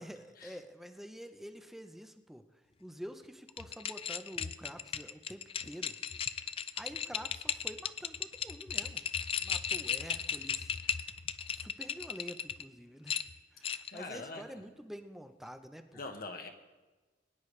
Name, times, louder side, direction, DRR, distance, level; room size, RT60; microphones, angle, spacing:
voice 1, 0.0-2.4 2.8-6.0 6.8-9.0 9.4-11.1 11.6-13.2 13.5-16.0, equal, ahead, 7 dB, 0.7 m, -48 dB
sound 1, 3.5-12.6 13.1-14.0, left 7 dB, 30° left, 0.4 m, -36 dB
voice 2, 13.9-14.7 15.9-16.5, left 3 dB, 55° left, 4 dB, 1.2 m, -43 dB
21.5 x 10.0 x 3.3 m, 1.2 s
head